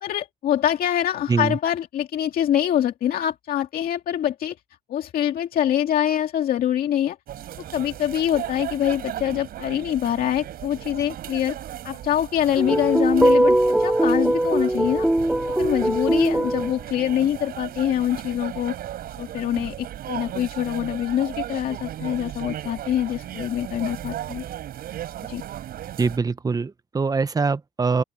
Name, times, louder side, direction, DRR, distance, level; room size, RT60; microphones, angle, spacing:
voice 1, 0.0-4.5 4.9-7.2 7.7-11.6 11.8-15.1 15.6-18.7 19.2-24.4 25.3-25.4, left 11 dB, 60° left, 2.1 m, -24 dB
sound 1, 7.3-26.2, right 12 dB, 65° right, 6.3 m, -36 dB
sound 2, 12.6-16.7, right 1 dB, 5° right, 0.5 m, -20 dB
voice 2, 26.0-28.0, right 4 dB, 20° right, 1.1 m, -23 dB
open air
cardioid pair, 110°, 17 cm